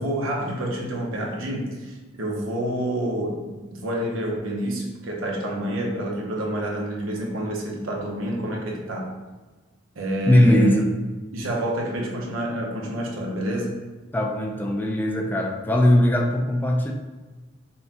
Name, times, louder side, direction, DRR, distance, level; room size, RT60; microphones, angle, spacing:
voice 1, 0.0-9.1 9.9-10.9 11.3-13.8, right 1 dB, 90° right, -1 dB, 0.8 m, -28 dB
voice 2, 10.3-10.9 14.1-16.9, left 1 dB, 10° left, 0 dB, 0.4 m, -19 dB
5.5 x 2.3 x 2.8 m, 1.3 s
head